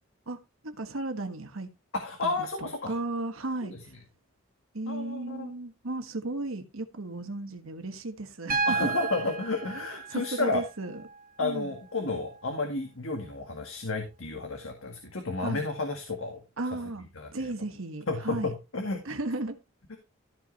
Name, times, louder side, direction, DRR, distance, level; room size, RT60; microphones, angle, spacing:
voice 1, 0.3-1.7 2.2-3.9 4.7-8.9 10.1-11.0 11.4-11.7 15.4-15.6 16.6-17.0 17.3-18.5 19.0-19.6, right 2 dB, 85° right, 1.4 m, -35 dB
voice 2, 1.9-2.9 3.6-3.8 4.9-5.5 8.6-10.6 11.4-16.4 17.2-17.3 18.1-19.0 19.9-20.0, left 3 dB, 80° left, 1.9 m, -32 dB
Piano, 8.5-12.5 14.1-14.2, right 4 dB, 45° right, 1.3 m, -34 dB
13.5 x 5.3 x 4.0 m
head